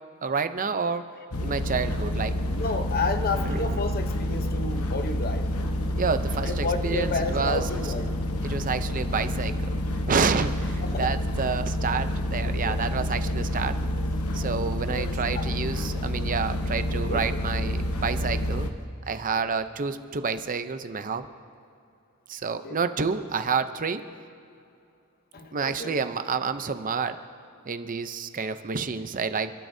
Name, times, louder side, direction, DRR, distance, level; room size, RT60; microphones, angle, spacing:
voice 1, 0.2-1.0 1.4-2.6 3.4-4.1 5.9-7.6 8.4-9.7 10.1-13.8 14.3-18.7 19.1-21.3 22.3-24.0 25.5-27.2 27.6-29.5, right 5 dB, 40° right, 10 dB, 0.6 m, -29 dB
sound 1, 1.3-18.7, left 1 dB, 90° left, 1.0 m, -28 dB
voice 2, 2.5-5.4 6.4-8.1 10.8-11.1 12.4-12.8 14.9-15.5 17.1-17.4 19.3-19.5 22.5-22.8 25.3-26.0, left 3 dB, 45° left, 7 dB, 0.9 m, -31 dB
28.5 x 12.5 x 2.7 m, 2.5 s
head